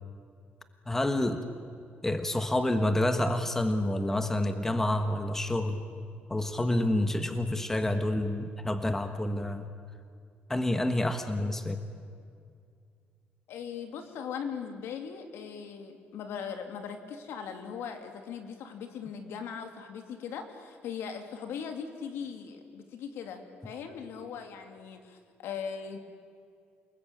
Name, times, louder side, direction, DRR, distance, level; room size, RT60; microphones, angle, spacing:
voice 1, 0.9-1.4 2.0-5.8 6.3-9.7 10.5-11.8, left 1 dB, 10° left, 8 dB, 1.4 m, -28 dB
voice 2, 13.5-26.0, left 7 dB, 80° left, 6 dB, 2.8 m, -39 dB
29.0 x 19.5 x 8.9 m, 2.3 s
cardioid pair, 155°, 4 cm